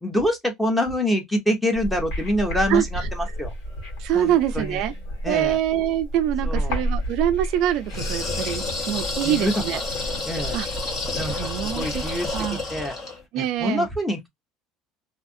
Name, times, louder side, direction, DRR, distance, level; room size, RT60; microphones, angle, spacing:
voice 1, 0.0-3.5 4.1-4.8 5.2-5.6 6.4-6.8 9.2-9.6 10.2-10.6 11.1-11.5 11.7-13.0 13.4-14.3, equal, 5° left, 0.9 m, -26 dB
sound 1, 1.7-12.4, equal, 80° left, 1.6 m, -32 dB
voice 2, 4.0-4.9 5.2-9.8 10.5-10.7 11.3-12.0 12.3-12.6 13.3-13.9, right 11 dB, 65° right, 0.3 m, -24 dB
sound 2, 7.9-13.2, left 3 dB, 40° left, 1.2 m, -30 dB
2.7 x 2.4 x 2.5 m
cardioid pair, 140°, 0 cm